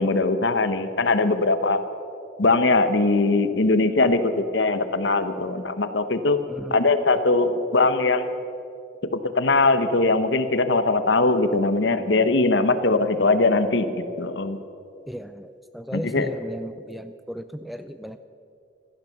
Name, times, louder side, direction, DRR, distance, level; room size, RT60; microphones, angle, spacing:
voice 1, 0.0-1.8 2.4-6.4 6.7-8.3 9.1-14.6 15.9-16.3, left 3 dB, 65° left, 10 dB, 0.9 m, -21 dB
voice 2, 6.5-6.8 15.1-18.2, equal, ahead, 10 dB, 0.3 m, -35 dB
16.0 x 12.5 x 6.6 m, 2.6 s
head